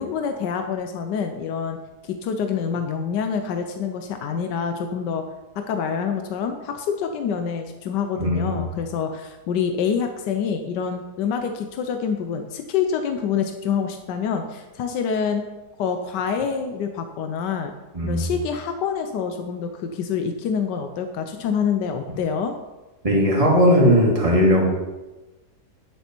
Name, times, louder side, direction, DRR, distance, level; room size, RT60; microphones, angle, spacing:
voice 1, 0.0-1.8 2.0-5.2 5.7-15.4 15.8-17.7 18.0-22.5, left 6 dB, 90° left, 6 dB, 1.3 m, -26 dB
voice 2, 8.2-8.6 17.9-18.3 23.0-24.6, equal, 20° right, -3 dB, 2.1 m, -18 dB
9.9 x 7.0 x 4.4 m, 1.1 s
omnidirectional pair, 1.8 m